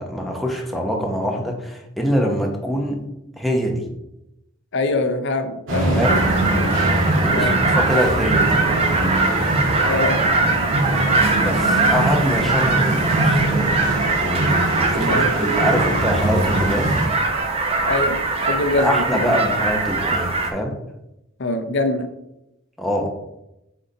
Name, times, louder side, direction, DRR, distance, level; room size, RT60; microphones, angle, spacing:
voice 1, 0.0-3.0 3.4-3.8 6.0-6.2 7.2-8.6 11.0-11.1 11.4-13.7 14.1-16.9 18.8-20.8 22.8-23.1, equal, ahead, 0 dB, 0.9 m, -24 dB
voice 2, 4.7-6.2 7.3-7.6 9.8-10.2 15.1-15.3 17.9-19.3 21.4-22.1, left 2 dB, 60° left, 7 dB, 0.6 m, -23 dB
sound 1, 5.7-17.1, right 1 dB, 70° right, 2.1 m, -23 dB
sound 2, 6.0-20.5, right 3 dB, 30° right, 0.8 m, -21 dB
8.0 x 4.0 x 3.9 m, 0.89 s
head